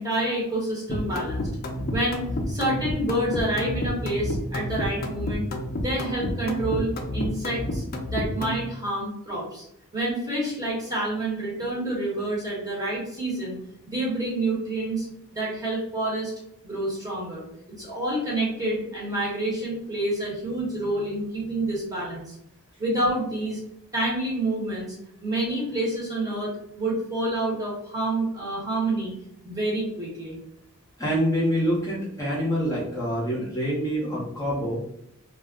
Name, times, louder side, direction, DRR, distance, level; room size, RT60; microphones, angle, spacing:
voice 1, 0.0-1.5 1.9-5.5 5.7-9.6 9.9-13.6 13.9-15.1 15.3-16.3 16.6-17.4 17.8-22.3 22.8-23.6 23.9-26.5 26.8-29.1 29.4-30.4, right 1 dB, 15° right, -5 dB, 1.0 m, -28 dB
sound 1, 0.9-8.6, left 1 dB, 40° left, 0.5 m, -30 dB
voice 2, 31.0-34.8, equal, 15° left, -6 dB, 0.8 m, -26 dB
2.3 x 2.1 x 3.6 m, 0.74 s
head